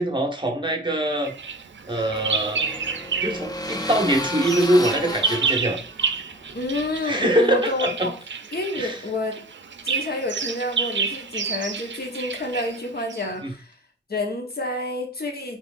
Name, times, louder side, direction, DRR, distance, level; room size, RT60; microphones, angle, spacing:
voice 1, 0.0-1.3 1.9-2.6 3.2-5.8 7.0-8.1 8.7-9.0 13.4-13.5, right 1 dB, 25° right, 1.1 m, -23 dB
Bird vocalization bird call bird song, 1.2-3.5 3.8-13.3, right 5 dB, 75° right, 0.5 m, -30 dB
sound 1, 1.4-7.0, left 1 dB, 20° left, 0.7 m, -33 dB
voice 2, 6.5-8.1 8.5-9.4 9.8-13.7 14.1-15.6, left 2 dB, 55° left, 1.1 m, -29 dB
4.5 x 3.5 x 2.5 m
wide cardioid pair, 85°, 19 cm